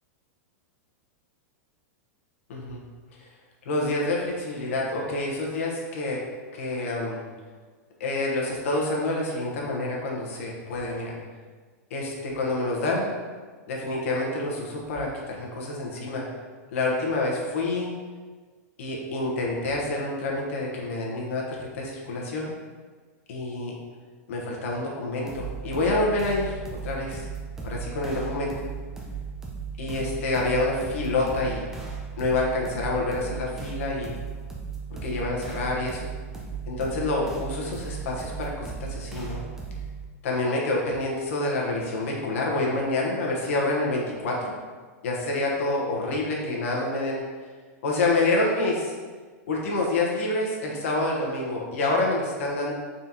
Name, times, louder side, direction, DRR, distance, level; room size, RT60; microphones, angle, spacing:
voice 1, 2.5-2.8 3.6-6.2 6.5-7.2 8.0-11.2 11.9-13.1 13.7-16.3 16.7-17.9 18.8-22.5 23.3-23.7 24.3-27.3 27.6-28.5 29.8-31.7 32.2-34.2 35.0-36.0 36.7-39.4 40.2-44.5 45.0-47.2 47.8-48.9 49.5-52.7, left 2 dB, 55° left, -2 dB, 1.0 m, -27 dB
sound 1, 25.3-40.0, right 5 dB, 5° right, 0.3 m, -36 dB
4.2 x 3.7 x 2.8 m, 1.5 s
supercardioid pair, 175°, 9 cm